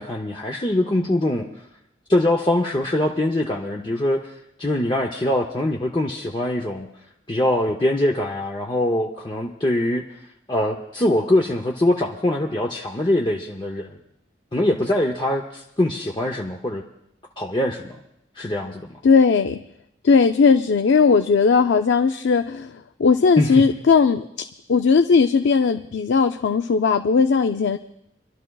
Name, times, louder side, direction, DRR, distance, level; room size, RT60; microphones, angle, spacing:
voice 1, 0.0-1.5 2.1-6.9 7.3-10.0 10.5-14.0 14.5-16.8 17.4-17.9 18.4-18.9 23.4-23.6, left 1 dB, 25° left, 0 dB, 0.6 m, -23 dB
voice 2, 19.0-19.6 20.0-24.3 24.7-27.8, left 5 dB, 70° left, 7 dB, 0.4 m, -17 dB
28.5 x 12.5 x 2.3 m, 0.78 s
head